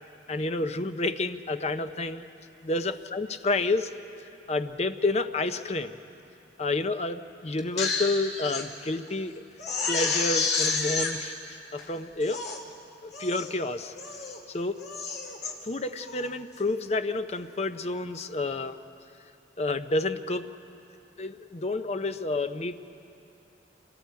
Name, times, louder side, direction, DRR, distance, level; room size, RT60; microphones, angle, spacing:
voice 1, 0.3-2.2 2.6-3.9 4.5-5.9 6.6-9.3 9.9-12.4 13.0-13.9 14.5-14.8 15.6-18.8 19.6-20.5 21.2-22.7, left 2 dB, 35° left, 9 dB, 0.6 m, -29 dB
Crying sobbing, 7.6-8.6 9.1-9.2 9.6-11.1 11.8-11.9 12.2-12.6 13.1-13.5 13.9-14.4 14.8-15.5 16.0-16.3, left 4 dB, 65° left, 2.4 m, -30 dB
28.0 x 23.0 x 4.7 m, 2.7 s
head